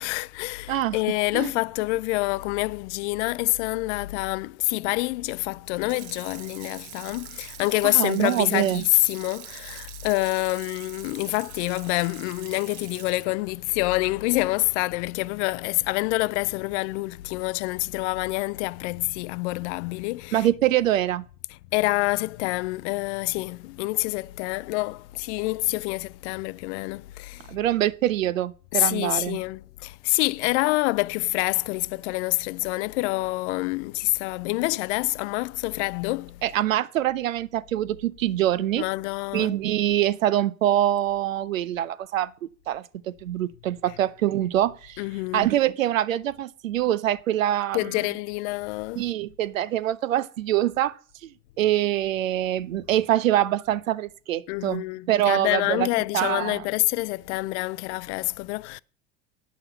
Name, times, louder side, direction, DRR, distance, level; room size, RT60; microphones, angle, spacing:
voice 1, 0.0-20.5 21.7-27.6 28.7-36.4 38.8-39.5 45.0-45.5 47.7-49.0 54.5-58.8, left 22 dB, 65° left, 0.5 m, -27 dB
Water tap faucet / Sink (filling or washing), 5.7-14.9 15.3-15.4, right 13 dB, 55° right, 0.9 m, -44 dB
voice 2, 7.8-8.8 20.3-21.3 27.5-29.4 36.4-38.8 39.3-42.3 42.7-45.0 45.3-48.0 49.0-55.9 56.1-56.6, right 12 dB, 85° right, 0.6 m, -24 dB
9.1 x 6.5 x 5.6 m
hypercardioid pair, 75°, 38 cm